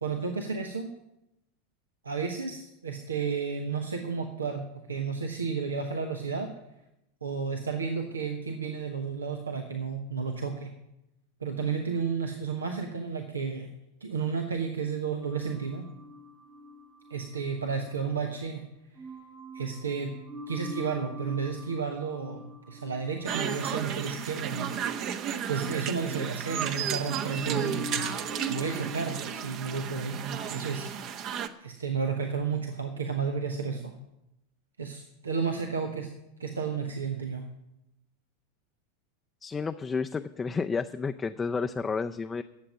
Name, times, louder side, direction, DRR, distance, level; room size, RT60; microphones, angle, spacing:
voice 1, 0.0-0.9 2.0-6.5 7.2-10.7 11.4-13.7 14.0-15.9 17.1-18.7 19.5-20.1 20.5-25.2 25.5-28.2 28.5-31.2 31.6-34.0 34.8-36.1 36.4-37.5, right 5 dB, 85° right, 4 dB, 1.1 m, -32 dB
sound 1, 15.2-18.5 18.9-25.8 26.0-29.3, left 1 dB, 15° right, 1.2 m, -45 dB
sound 2, 23.3-31.5, right 8 dB, 45° right, 1.0 m, -33 dB
voice 2, 39.4-42.4, left 5 dB, 20° left, 6 dB, 0.5 m, -31 dB
11.5 x 7.6 x 9.4 m, 0.87 s
hypercardioid pair, 90°, 0 cm